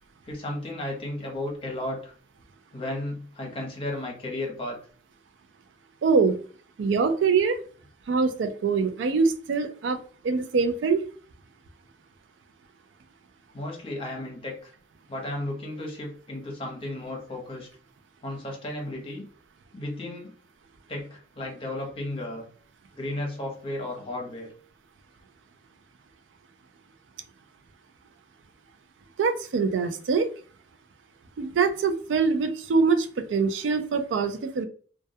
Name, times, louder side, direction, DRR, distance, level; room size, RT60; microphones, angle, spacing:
voice 1, 0.2-2.1 2.7-4.8 13.5-14.7 15.1-17.7 18.2-19.3 19.7-20.3 20.9-22.5 23.0-24.5, left 1 dB, 30° left, 0 dB, 0.7 m, -34 dB
voice 2, 6.0-6.4 6.8-7.6 8.1-10.0 10.2-11.0 29.2-30.3 31.4-34.6, right 5 dB, 90° right, 8 dB, 0.3 m, -24 dB
2.2 x 2.1 x 2.7 m, 0.42 s
head